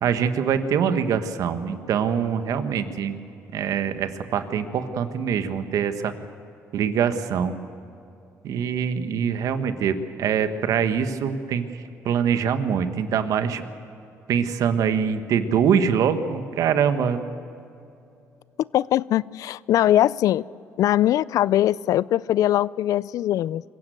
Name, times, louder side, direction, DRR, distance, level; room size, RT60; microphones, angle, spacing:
voice 1, 0.0-3.1 3.5-6.1 6.7-7.6 8.4-11.7 12.0-13.6 14.3-17.2, right 7 dB, 70° right, 10 dB, 1.4 m, -24 dB
voice 2, 18.7-20.4 20.8-23.6, left 13 dB, 70° left, 22 dB, 0.4 m, -21 dB
24.5 x 15.5 x 7.9 m, 2.6 s
cardioid pair, 90°, 6 cm